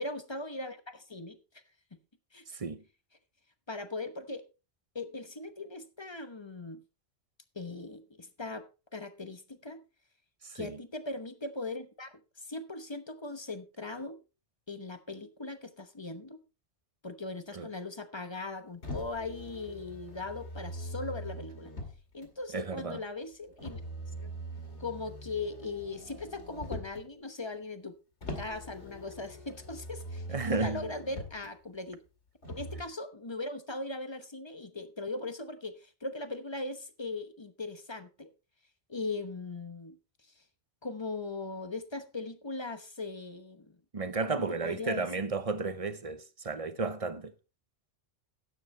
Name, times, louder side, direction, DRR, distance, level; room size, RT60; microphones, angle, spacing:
voice 1, 0.0-1.4 2.3-2.4 3.7-4.4 4.9-6.8 7.5-8.7 8.9-9.8 10.5-14.2 14.7-16.4 17.0-21.7 22.1-23.8 24.2-24.3 24.8-28.0 28.3-32.0 32.5-38.3 38.9-40.0 40.8-43.8 44.2-45.1, left 3 dB, 25° left, 0.9 m, -39 dB
voice 2, 10.4-10.8 17.5-17.7 22.5-23.0 30.3-30.9 43.9-47.3, right 4 dB, 35° right, 0.8 m, -33 dB
Motor vehicle (road), 18.8-22.3 23.6-27.1 28.2-31.5 32.4-32.8, equal, 70° left, 2.5 m, -42 dB
12.5 x 9.7 x 3.2 m
omnidirectional pair, 1.2 m